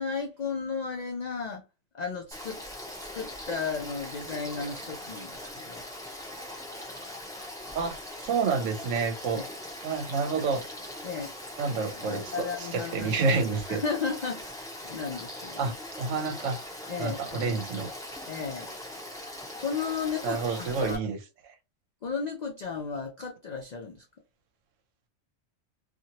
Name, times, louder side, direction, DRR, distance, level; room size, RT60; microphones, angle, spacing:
voice 1, 0.0-1.6 1.9-2.6 3.1-5.8 9.4-9.5 11.0-11.3 12.1-13.2 13.7-15.7 16.9-17.5 18.3-18.7 19.6-21.0 22.0-24.1, left 5 dB, 85° left, 0.3 m, -34 dB
Frog / Stream, 2.3-21.0, left 1 dB, 5° left, 0.6 m, -41 dB
voice 2, 7.7-9.4 9.8-10.6 11.6-13.8 15.6-16.6 17.0-17.9 20.2-21.2, right 4 dB, 75° right, 0.9 m, -29 dB
2.8 x 2.5 x 2.8 m
omnidirectional pair, 1.4 m